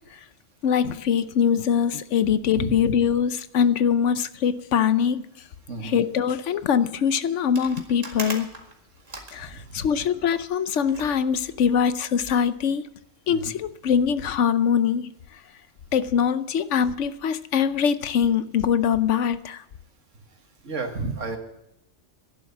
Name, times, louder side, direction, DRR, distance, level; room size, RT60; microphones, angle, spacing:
voice 1, 0.6-5.3 5.8-8.6 9.3-12.9 13.3-15.1 15.9-19.6, left 7 dB, 75° left, 1.0 m, -23 dB
voice 2, 2.5-2.9 5.7-6.0 9.4-9.9 13.3-13.5 20.6-21.4, right 3 dB, 85° right, 2.2 m, -32 dB
sound 1, 7.5-10.2 10.8-12.5, right 2 dB, 30° right, 2.1 m, -40 dB
12.0 x 11.0 x 7.2 m
omnidirectional pair, 1.3 m